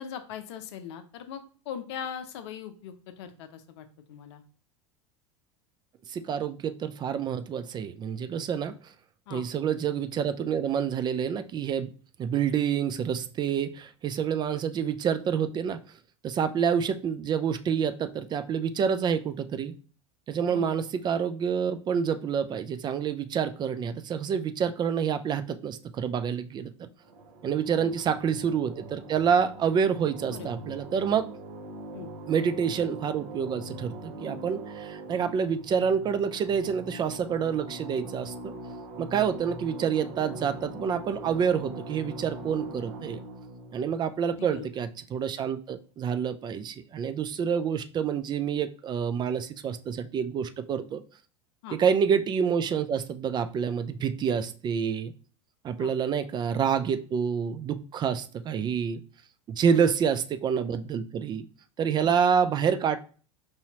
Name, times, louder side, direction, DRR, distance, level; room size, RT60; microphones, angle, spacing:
voice 1, 0.0-4.4 9.3-9.5 20.5-20.8 27.8-27.9 30.3-30.5 31.9-32.1 44.3-44.7 51.6-51.8 55.8-55.9 59.7-59.9 62.0-62.2, left 8 dB, 65° left, 9 dB, 0.6 m, -40 dB
voice 2, 6.1-8.8 9.3-11.9 12.2-15.8 16.2-19.7 20.3-26.9 27.4-31.3 32.3-38.5 39.0-43.2 43.7-51.0 51.7-55.1 55.6-59.0 59.5-61.4 61.8-63.0, right 7 dB, 30° right, 10 dB, 0.3 m, -28 dB
sound 1, 27.0-45.1, right 1 dB, 55° right, 0.9 m, -42 dB
4.8 x 2.7 x 2.8 m, 0.39 s
hypercardioid pair, 80°, 16 cm